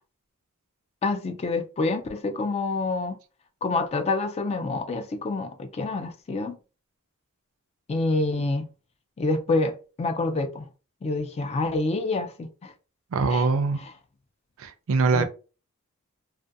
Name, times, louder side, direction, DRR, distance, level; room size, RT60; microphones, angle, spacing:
voice 1, 1.0-3.2 3.6-6.6 7.9-8.7 9.2-10.7 11.0-12.7 13.3-13.5 15.1-15.2, left 3 dB, 30° left, 0.3 m, -27 dB
voice 2, 13.1-13.8 14.6-15.2, right 4 dB, 65° right, 0.4 m, -23 dB
2.3 x 2.2 x 2.6 m
head